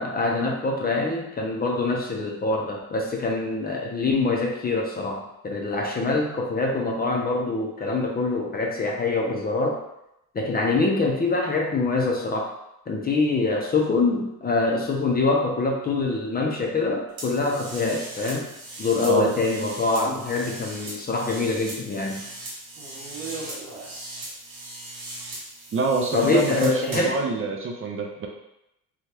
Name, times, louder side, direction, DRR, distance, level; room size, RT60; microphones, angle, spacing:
voice 1, 0.0-9.8 10.3-12.5 12.9-18.5 18.8-22.3 26.1-27.2, left 3 dB, 25° left, 0 dB, 0.5 m, -24 dB
sound 1, 17.2-27.2, right 2 dB, 80° right, 1.2 m, -38 dB
voice 2, 25.7-28.3, right 4 dB, 40° right, 1 dB, 0.5 m, -26 dB
2.8 x 2.3 x 3.2 m, 0.84 s
cardioid pair, 110°, 35 cm